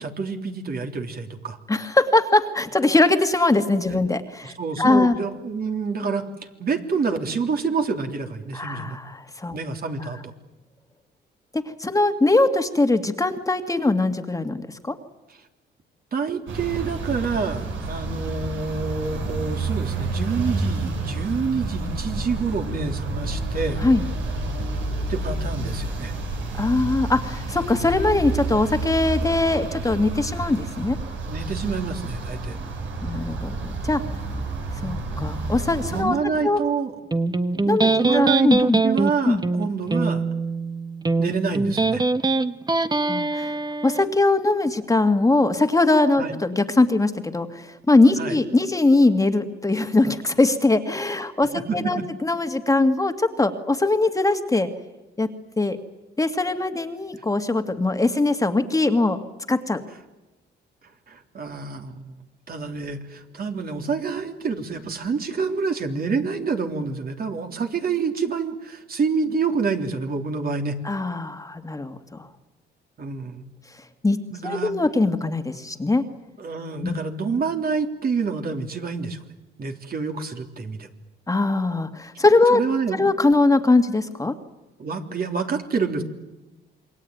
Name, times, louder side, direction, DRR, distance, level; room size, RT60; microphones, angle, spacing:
voice 1, 0.0-1.6 4.4-6.2 6.6-9.0 9.5-10.3 16.1-23.8 25.1-26.1 31.3-32.6 35.9-36.9 37.9-40.2 41.2-42.0 46.2-46.3 48.2-48.4 51.5-52.0 61.1-62.2 62.5-70.8 73.0-73.4 74.3-74.7 76.4-79.2 79.6-80.9 82.5-83.1 84.8-86.0, right 5 dB, 50° right, 5 dB, 3.4 m, -27 dB
voice 2, 1.7-5.2 8.5-9.6 10.0-10.1 11.5-15.0 23.8-24.1 26.6-31.0 33.0-34.0 34.7-36.2 36.4-36.6 37.7-38.8 39.3-39.4 43.1-43.5 43.8-54.7 55.2-55.3 55.6-55.8 56.2-59.2 59.5-59.8 70.8-72.3 74.0-76.0 76.8-77.0 81.3-82.6 82.9-84.3, left 2 dB, 15° left, 7 dB, 2.1 m, -21 dB
sound 1, 16.5-36.0, right 2 dB, 75° right, 7.3 m, -29 dB
Electric guitar, 37.1-44.1, right 3 dB, 20° right, 1.4 m, -22 dB
28.0 x 22.5 x 9.5 m, 1.0 s
cardioid pair, 90°, 20 cm